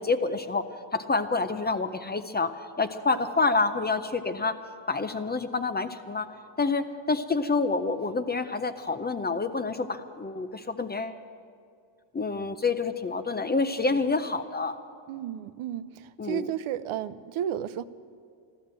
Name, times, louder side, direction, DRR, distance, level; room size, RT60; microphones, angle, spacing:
voice 1, 0.0-4.6 4.9-6.3 6.6-11.2 12.1-14.8 16.2-16.5, left 3 dB, 20° left, 10 dB, 0.4 m, -28 dB
voice 2, 15.1-15.9 16.2-17.8, right 11 dB, 80° right, 14 dB, 0.7 m, -32 dB
14.5 x 12.5 x 7.5 m, 2.3 s
cardioid pair, 140°, 48 cm